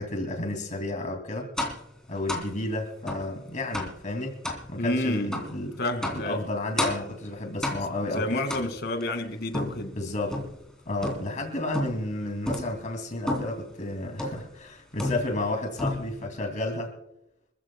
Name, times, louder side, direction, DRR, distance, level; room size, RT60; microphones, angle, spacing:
voice 1, 0.0-1.5 2.1-4.4 4.7-5.7 6.1-8.4 9.9-10.4 10.9-16.9, left 2 dB, 40° left, 2.7 m, -32 dB
Tapping Metal Radiator A, 1.6-1.9 2.3-2.5 3.1-3.3 3.7-4.0 4.4-4.7 5.3-5.5 6.0-6.3 6.8-7.1 7.6-8.0 8.5-9.0 9.5-10.6 11.0-11.4 11.7-12.1 12.5-12.8 13.3-13.6 14.2-14.5 15.0-15.5 15.8-16.3, left 1 dB, 5° left, 3.1 m, -31 dB
voice 2, 4.8-5.3 5.8-6.4 7.7-7.8 8.1-9.9, left 1 dB, 55° left, 2.3 m, -29 dB
26.5 x 14.5 x 2.3 m
head